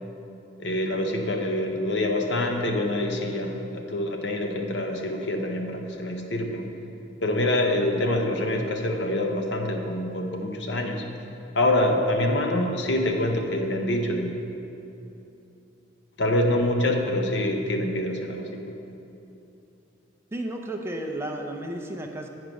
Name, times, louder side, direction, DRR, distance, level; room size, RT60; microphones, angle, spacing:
voice 1, 0.6-6.7 7.2-11.1 11.5-14.4 16.2-18.8, left 1 dB, 65° left, 3 dB, 0.8 m, -26 dB
voice 2, 20.3-22.3, right 1 dB, 15° right, 2 dB, 0.5 m, -33 dB
8.8 x 4.7 x 5.2 m, 2.9 s
head